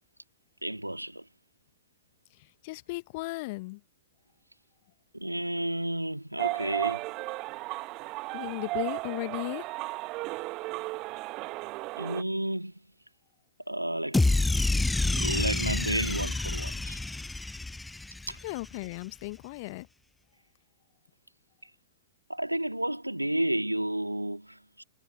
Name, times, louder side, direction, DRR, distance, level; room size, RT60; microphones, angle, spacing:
voice 1, 0.6-1.3 5.1-7.1 12.0-12.8 13.7-14.2 15.2-17.0 18.3-18.4 22.3-24.8, right 1 dB, 90° right, 2.3 m, -31 dB
voice 2, 2.6-3.8 8.3-9.6 18.4-19.9, left 24 dB, 45° left, 0.8 m, -36 dB
sound 1, 6.4-12.2, right 21 dB, 35° right, 0.9 m, -34 dB
sound 2, 14.1-18.5, left 2 dB, 5° left, 0.5 m, -28 dB
figure-of-eight pair, 105°, 0 cm